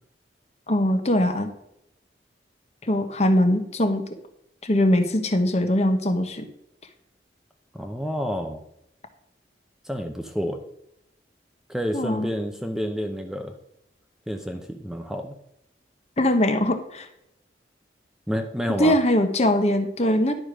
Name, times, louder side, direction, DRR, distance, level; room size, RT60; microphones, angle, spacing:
voice 1, 0.7-1.5 2.8-4.0 4.6-6.5 11.9-12.3 16.2-17.1 18.7-20.3, left 1 dB, 40° left, 7 dB, 1.1 m, -21 dB
voice 2, 7.7-8.6 9.8-10.6 11.7-13.5 14.3-15.3 18.3-19.0, equal, 5° right, 5 dB, 0.7 m, -29 dB
11.0 x 5.0 x 6.2 m, 0.80 s
head